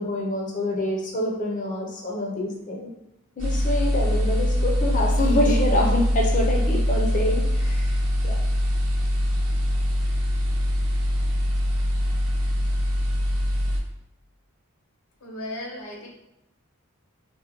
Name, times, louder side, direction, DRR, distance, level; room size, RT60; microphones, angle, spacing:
voice 1, 0.0-2.9 3.4-8.0 8.2-8.4, left 1 dB, 35° left, -1 dB, 0.5 m, -26 dB
sound 1, 3.4-13.8, equal, 80° right, 0.7 m, -23 dB
voice 2, 15.2-16.1, left 1 dB, 75° left, -1 dB, 0.8 m, -35 dB
3.7 x 2.1 x 2.9 m, 0.87 s
head